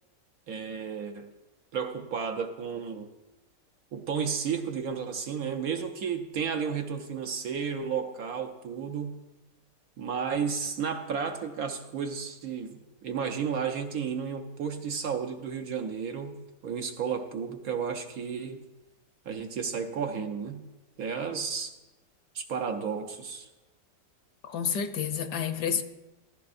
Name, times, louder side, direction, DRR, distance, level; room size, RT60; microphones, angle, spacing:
voice 1, 0.5-1.3 1.7-3.1 3.9-9.2 10.0-18.6 19.2-20.6 21.0-21.7 22.3-23.5, right 6 dB, 60° right, 1.2 m, -33 dB
voice 2, 24.4-25.8, left 7 dB, 70° left, 1.3 m, -29 dB
15.5 x 14.5 x 2.6 m
omnidirectional pair, 1.8 m